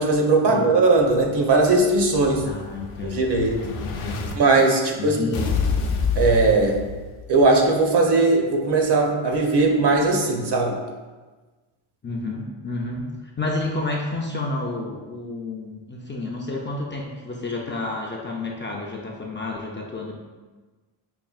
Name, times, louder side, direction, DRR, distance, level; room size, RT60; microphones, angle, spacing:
voice 1, 0.0-2.4 3.0-3.5 4.4-5.2 6.2-6.8 7.3-10.8, right 3 dB, 55° right, 1 dB, 0.8 m, -19 dB
Explosion, 1.0-4.3 5.3-7.3, left 5 dB, 85° left, 0.7 m, -28 dB
voice 2, 2.4-3.3 3.6-4.2 5.0-5.5 12.0-20.1, left 2 dB, 25° left, -2 dB, 0.4 m, -30 dB
5.4 x 2.6 x 2.3 m, 1.3 s
cardioid pair, 85°, 49 cm